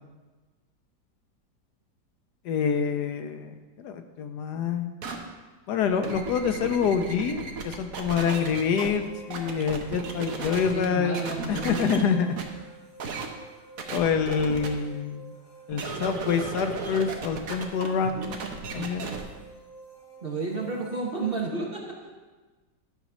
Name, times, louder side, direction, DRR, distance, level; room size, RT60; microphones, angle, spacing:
voice 1, 2.4-4.9 5.7-11.2 11.5-12.4 13.9-15.3 15.7-18.4 18.7-19.1, left 6 dB, 75° left, 8 dB, 1.1 m, -26 dB
sound 1, 5.0-5.2 5.8-8.9 9.3-10.9 11.1-12.0 12.4-12.5 13.0-13.3 13.8-14.7 15.7-19.2, right 4 dB, 55° right, 1.3 m, -35 dB
sound 2, 8.3-21.4, right 3 dB, 45° left, 2.2 m, -49 dB
voice 2, 10.4-12.0 20.2-22.0, right 3 dB, 40° right, -1 dB, 1.0 m, -32 dB
12.0 x 4.1 x 6.0 m, 1.3 s
omnidirectional pair, 1.9 m